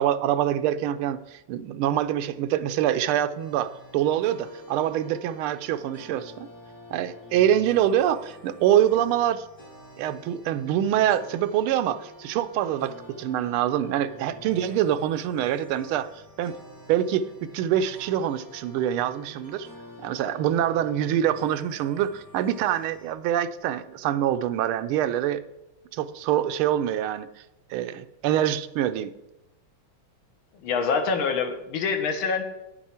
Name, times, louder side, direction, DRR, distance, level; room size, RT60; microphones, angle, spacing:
voice 1, 0.0-6.5 6.9-9.4 10.0-16.1 16.4-16.5 16.9-17.3 17.5-19.7 20.0-25.4 25.9-27.3 27.7-29.1, right 11 dB, 85° right, 11 dB, 1.4 m, -25 dB
sound 1, 3.4-23.1, left 1 dB, 10° left, 3.3 m, -48 dB
voice 2, 30.6-32.4, left 5 dB, 75° left, 6 dB, 1.8 m, -25 dB
9.4 x 7.3 x 4.3 m, 0.98 s
omnidirectional pair, 2.3 m